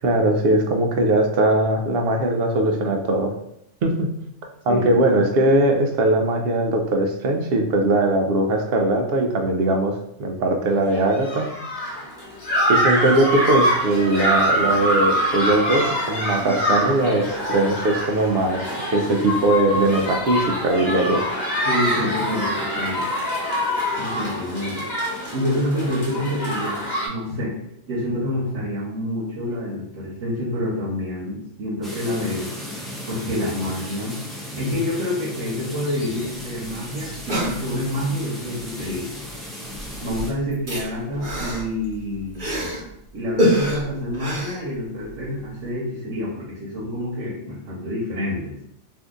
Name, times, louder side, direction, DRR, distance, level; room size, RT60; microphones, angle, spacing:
voice 1, 0.0-3.3 3.8-4.1 4.7-11.5 12.7-21.2, right 1 dB, 60° right, 3 dB, 0.7 m, -20 dB
sound 1, 10.9-27.1, equal, 60° left, 1.1 m, -24 dB
voice 2, 21.6-23.0 24.0-24.9 25.3-27.6 27.9-32.5 33.1-34.2 34.5-39.1 40.0-42.5 43.1-48.5, left 1 dB, 85° right, -5 dB, 1.1 m, -27 dB
sound 2, 31.8-40.3, left 1 dB, ahead, 0.4 m, -36 dB
sound 3, 36.4-36.5 36.6-36.7 37.1-38.1 39.2-39.4 39.7-42.9 43.4-45.2 45.6-45.7, equal, 45° right, 1.0 m, -26 dB
2.7 x 2.6 x 3.5 m, 0.78 s
omnidirectional pair, 1.2 m